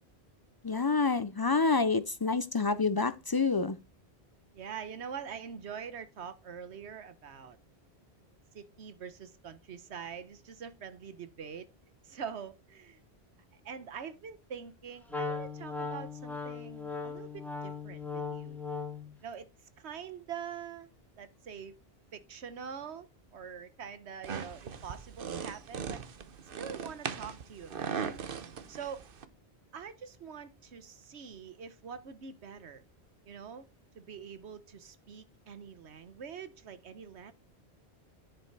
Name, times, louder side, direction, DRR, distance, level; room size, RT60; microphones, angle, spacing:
voice 1, 0.6-3.8, left 4 dB, 35° left, 0.3 m, -28 dB
voice 2, 4.5-7.6 8.5-11.7 12.0-13.0 13.5-18.6 19.2-19.5 19.8-20.9 21.2-21.8 22.1-26.0 26.6-28.1 28.7-29.0 29.7-32.8 33.2-33.7 33.9-37.3, right 7 dB, 85° right, 1.2 m, -44 dB
Wind instrument woodwind instrument, 15.1-19.1, left 4 dB, ahead, 1.7 m, -38 dB
sound 1, 24.2-29.3, right 6 dB, 60° right, 1.0 m, -39 dB
10.0 x 5.2 x 4.6 m
omnidirectional pair, 1.1 m